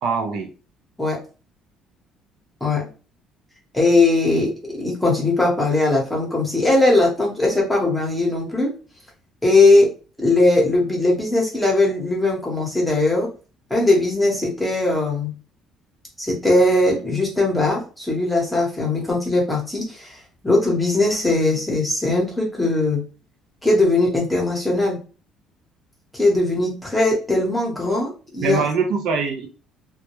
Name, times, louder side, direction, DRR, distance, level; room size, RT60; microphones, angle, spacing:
voice 1, 0.0-0.5 28.4-29.5, right 5 dB, 60° right, 5 dB, 0.4 m, -23 dB
voice 2, 3.7-4.5 4.8-8.7 9.4-9.9 10.2-13.3 13.7-15.3 16.2-20.2 20.4-23.0 23.6-25.0 26.1-28.6, left 2 dB, 5° left, -3 dB, 0.8 m, -19 dB
2.2 x 2.0 x 2.9 m, 0.35 s
cardioid pair, 150°, 0 cm